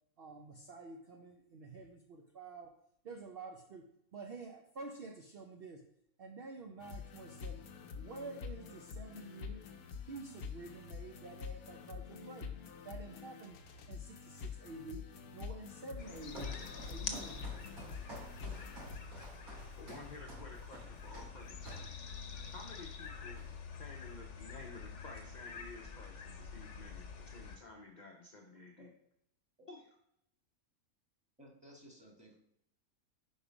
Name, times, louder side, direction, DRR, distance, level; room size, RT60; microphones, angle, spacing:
voice 1, 0.2-2.7 3.0-3.8 4.1-5.9 6.2-7.7 8.0-9.6 10.0-12.6 12.8-13.6 13.9-17.4, right 3 dB, 55° right, 2 dB, 0.7 m, -49 dB
sound 1, 6.8-19.0, left 6 dB, 90° left, 1.2 m, -47 dB
sound 2, 16.0-27.6, left 5 dB, 60° left, 1.0 m, -47 dB
Walk footsteps, 16.0-22.0 22.5-22.7 23.0-23.8, right 2 dB, 75° right, 3.1 m, -52 dB
voice 2, 19.8-21.8 22.5-23.4 23.7-28.9 29.7-29.8, left 2 dB, 45° left, 1 dB, 0.6 m, -52 dB
voice 3, 31.4-32.3, right 1 dB, 5° right, -2 dB, 1.5 m, -57 dB
5.2 x 4.9 x 5.0 m, 0.77 s
omnidirectional pair, 1.5 m